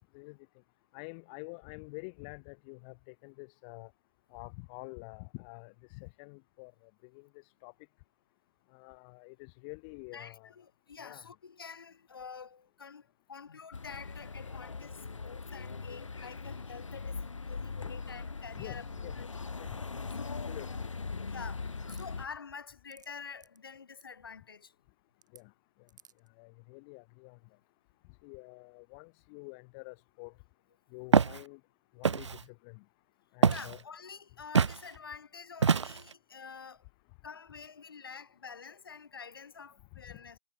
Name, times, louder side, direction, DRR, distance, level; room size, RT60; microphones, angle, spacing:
voice 1, 0.9-3.9 4.3-7.3 7.6-7.7 8.7-10.5 11.0-11.3 18.5-19.2 19.6-20.8 25.3-25.5 26.4-27.4 28.2-30.3 30.9-31.6 31.9-32.8 33.3-33.8, left 34 dB, 15° left, 1.6 m, -48 dB
voice 2, 10.1-18.9 19.1-19.3 19.6-19.7 20.1-20.6 21.3-24.7 33.5-36.8 37.2-40.4, left 6 dB, 45° left, 1.5 m, -48 dB
sound 1, 13.7-22.3, left 4 dB, 70° left, 1.3 m, -40 dB
sound 2, 21.9-22.1 22.7-23.1 23.4-23.6 23.9-24.1 25.2-25.4 25.9-26.3, right 7 dB, 35° right, 2.3 m, -57 dB
Walk footsteps, 31.1-31.4 32.0-32.4 33.4-33.8 34.6-34.8 35.6-36.1, right 6 dB, 60° right, 0.4 m, -25 dB
figure-of-eight pair, 160°, 17 cm